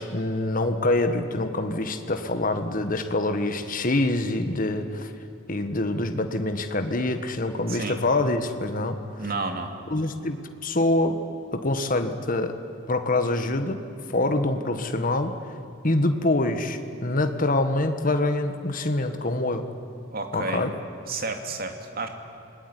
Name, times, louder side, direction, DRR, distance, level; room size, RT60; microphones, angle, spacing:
voice 1, 0.0-5.1 5.5-9.2 9.9-11.2 11.5-12.5 12.9-13.8 14.1-15.3 15.8-19.7 20.3-20.7, left 2 dB, 45° left, 7 dB, 1.6 m, -25 dB
voice 2, 9.2-9.7 20.1-20.7 21.1-22.1, right 3 dB, 50° right, 5 dB, 2.6 m, -31 dB
27.5 x 20.0 x 10.0 m, 2.9 s
head